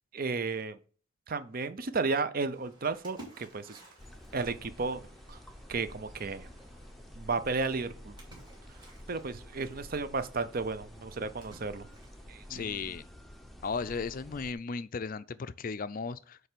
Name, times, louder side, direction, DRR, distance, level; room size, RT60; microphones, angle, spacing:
voice 1, 0.1-0.8 1.3-3.8 4.3-5.0 5.3-5.4 5.7-6.5 7.2-8.1 9.1-11.9 12.3-12.9, right 4 dB, 45° right, 0.6 m, -33 dB
Splash splatter, 2.5-12.5, right 1 dB, 20° right, 2.5 m, -56 dB
sound 1, 4.0-14.5, equal, ahead, 0.7 m, -50 dB
voice 2, 12.5-13.1 13.6-16.4, left 5 dB, 40° left, 0.4 m, -35 dB
8.9 x 3.3 x 6.7 m
head